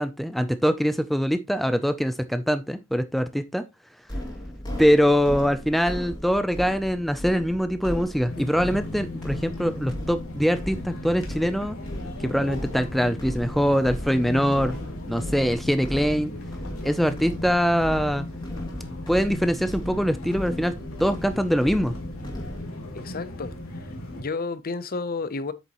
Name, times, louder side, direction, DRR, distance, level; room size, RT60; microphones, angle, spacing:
voice 1, 0.0-3.6 4.8-11.8 12.2-14.8 15.1-16.3 16.8-18.3 19.1-21.9, equal, ahead, 0.4 m, -23 dB
sound 1, 4.1-22.6, equal, 20° left, 2.5 m, -37 dB
sound 2, 8.3-24.2, left 1 dB, 80° left, 2.9 m, -36 dB
voice 2, 22.9-23.9 24.1-25.5, left 4 dB, 45° left, 0.7 m, -31 dB
8.2 x 7.0 x 3.0 m
head